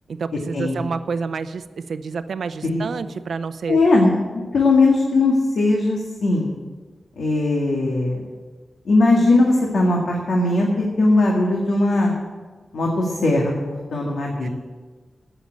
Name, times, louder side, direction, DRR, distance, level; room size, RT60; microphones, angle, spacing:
voice 1, 0.1-3.8 14.4-14.5, right 5 dB, 80° right, 12 dB, 0.6 m, -29 dB
voice 2, 3.7-4.1 4.5-6.5 7.2-8.2 8.9-12.1 12.7-13.5 13.9-14.5, left 2 dB, 85° left, -1 dB, 1.9 m, -19 dB
12.5 x 9.0 x 7.5 m, 1.4 s
wide cardioid pair, 100°, 0 cm